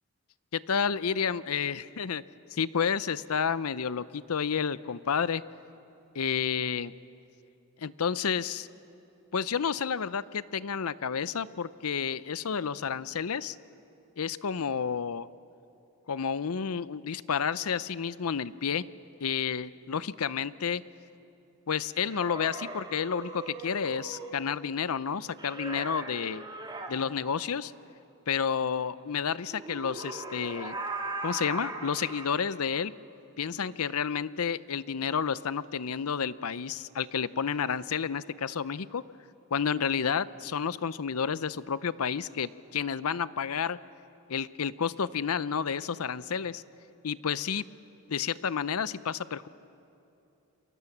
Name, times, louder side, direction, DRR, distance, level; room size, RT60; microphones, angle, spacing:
voice 1, 0.5-2.2 2.5-5.4 6.1-6.9 7.8-8.7 9.3-13.6 14.2-15.3 16.1-18.8 19.2-20.8 21.7-26.4 26.9-27.7 28.3-30.8 31.2-32.9 33.4-39.0 39.5-43.8 44.3-46.6 47.0-47.6 48.1-49.5, left 6 dB, 80° left, 17 dB, 0.6 m, -30 dB
sound 1, 21.9-24.4 25.4-26.9 29.5-32.4, right 2 dB, 20° right, 2.2 m, -39 dB
29.0 x 24.0 x 7.2 m, 2.8 s
head